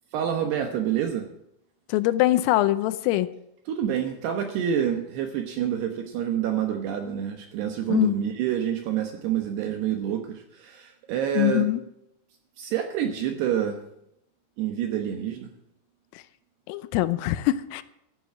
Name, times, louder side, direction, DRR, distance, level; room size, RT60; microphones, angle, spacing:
voice 1, 0.1-1.2 3.7-11.7 12.6-13.8 14.6-15.5, right 9 dB, 70° right, 5 dB, 2.6 m, -27 dB
voice 2, 1.9-3.3 7.9-8.1 11.4-11.8 16.7-17.8, left 15 dB, 85° left, 13 dB, 3.3 m, -23 dB
15.0 x 9.3 x 7.6 m, 0.80 s
omnidirectional pair, 5.9 m